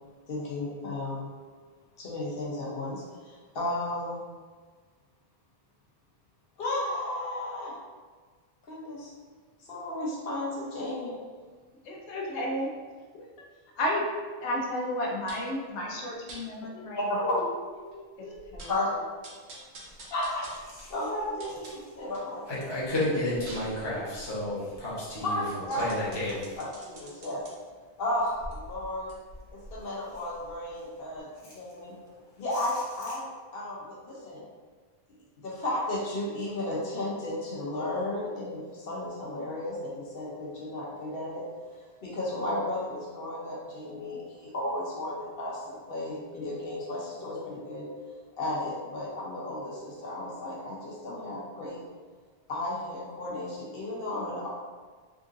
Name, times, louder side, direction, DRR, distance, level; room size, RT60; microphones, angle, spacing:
voice 1, 0.3-1.3 2.0-4.2 6.6-7.7 8.6-9.1 9.6-11.2 17.0-17.3 18.7-18.9 20.1-20.5 20.9-22.4 25.2-25.8 26.6-27.4 28.0-29.1 29.5-31.9 32.4-33.3 33.5-34.4 35.4-41.4 42.0-47.8 48.4-51.8 52.5-54.5, left 1 dB, 60° left, -5 dB, 0.9 m, -33 dB
voice 2, 11.8-12.7 13.1-13.3 13.8-14.1 14.4-17.4 17.8-19.0, left 1 dB, 90° left, -1 dB, 0.9 m, -33 dB
sound 1, 15.3-15.6 16.3-16.4 17.0-17.1 17.4-17.5 17.9-18.0 18.3-18.8 19.2-22.3 22.7-27.5 28.1-30.8 31.1-31.2, right 1 dB, 80° right, 1.0 m, -47 dB
voice 3, 22.5-26.6 29.6-29.7 31.3-32.8, left 1 dB, 25° left, -9 dB, 0.9 m, -33 dB
3.7 x 2.5 x 2.5 m, 1.5 s
omnidirectional pair, 1.1 m